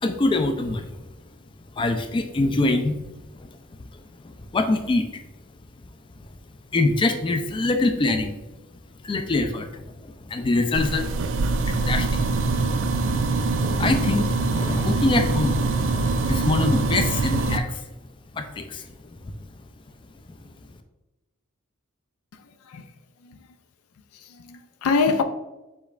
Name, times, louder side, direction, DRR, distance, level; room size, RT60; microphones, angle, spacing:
voice 1, 0.0-1.1 1.8-3.0 3.4-3.5 4.2-5.2 6.7-8.4 9.0-11.1 11.6-12.2 13.6-15.6 15.9-17.9 18.3-18.8, left 2 dB, 25° left, 0.3 m, -24 dB
sound 1, 10.7-17.6, right 3 dB, 60° right, 0.4 m, -23 dB
voice 2, 24.1-25.2, left 4 dB, 90° left, 0.4 m, -24 dB
5.1 x 4.3 x 2.4 m
head